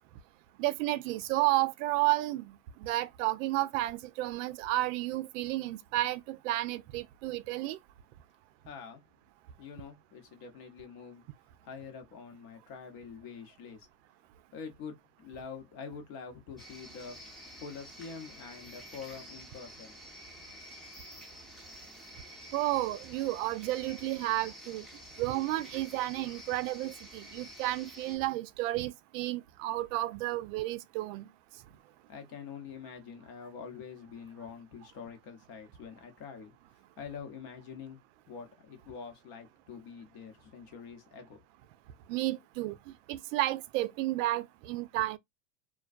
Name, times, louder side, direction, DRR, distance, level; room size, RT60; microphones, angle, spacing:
voice 1, 0.6-7.8 22.5-24.9 25.2-31.3 42.1-42.8 43.1-45.2, right 17 dB, 55° right, 0.5 m, -32 dB
voice 2, 8.6-9.0 9.6-11.2 11.6-13.9 14.5-17.2 17.6-20.0 32.1-36.5 37.0-38.0 38.3-41.4, left 6 dB, 50° left, 0.9 m, -45 dB
sound 1, 16.6-28.2, equal, ahead, 0.6 m, -49 dB
2.3 x 2.2 x 2.4 m
hypercardioid pair, 105°, 46 cm